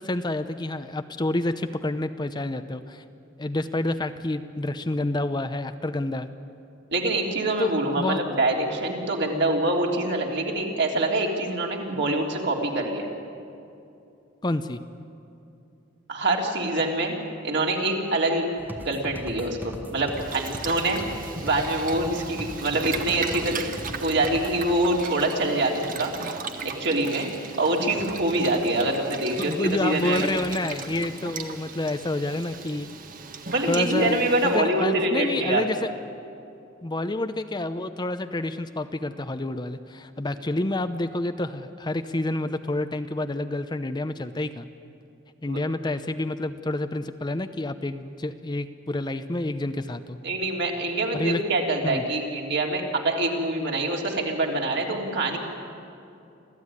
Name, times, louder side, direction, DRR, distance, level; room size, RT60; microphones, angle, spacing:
voice 1, 0.0-3.0 3.4-6.3 7.6-8.2 14.4-14.8 29.4-32.9 33.7-34.2 34.4-35.9 36.8-44.7 45.4-50.2 51.1-51.4 51.8-52.0, left 2 dB, 20° left, 9 dB, 0.7 m, -28 dB
voice 2, 6.9-13.1 16.1-17.2 17.4-18.4 18.8-21.0 21.4-23.7 24.0-26.1 26.6-27.3 27.6-30.3 33.5-35.7 45.5-45.6 50.2-55.4, right 2 dB, 60° right, 0 dB, 3.4 m, -25 dB
sound 1, 18.6-24.7, equal, 10° right, 1.2 m, -39 dB
Boiling, 20.1-34.6, right 4 dB, 45° right, 1.4 m, -37 dB
26.5 x 15.5 x 9.8 m, 2.6 s
head